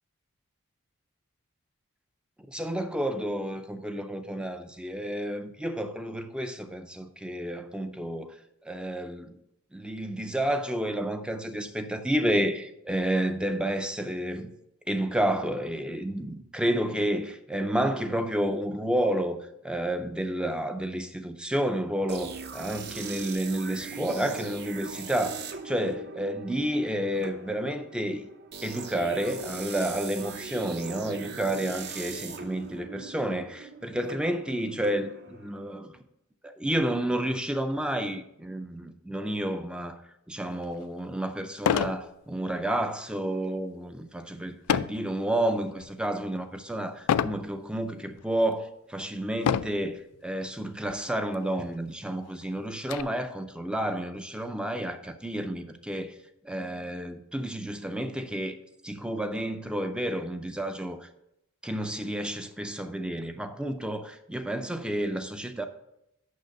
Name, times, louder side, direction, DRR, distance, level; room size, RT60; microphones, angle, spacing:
voice 1, 2.5-8.3 8.6-9.4 9.7-14.5 14.9-19.4 19.6-28.3 28.6-36.0 36.4-40.0 40.3-56.1 56.4-58.6 58.8-61.1 61.6-65.6, right 1 dB, 5° right, 0.4 m, -30 dB
sound 1, 22.1-35.8, right 5 dB, 50° right, 0.7 m, -41 dB
sound 2, 40.6-40.7 41.6-42.0 42.5-42.8 44.7-45.1 45.7-46.1 47.1-47.4 48.2-48.3 49.4-49.9 50.9-51.0 51.3-51.4 51.9-53.0, left 8 dB, 85° left, 0.3 m, -27 dB
6.6 x 5.9 x 5.3 m
head